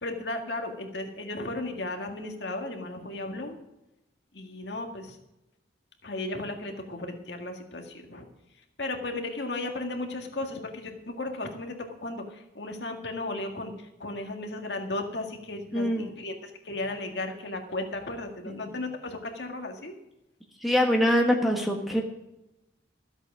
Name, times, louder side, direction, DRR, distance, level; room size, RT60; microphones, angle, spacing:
voice 1, 0.0-3.6 4.3-5.2 6.0-8.3 8.8-19.9 21.0-21.1, left 2 dB, 60° left, 3 dB, 1.9 m, -35 dB
voice 2, 15.7-16.1 18.5-18.7 20.6-22.0, equal, ahead, 2 dB, 1.4 m, -24 dB
14.0 x 8.1 x 6.2 m, 0.92 s
head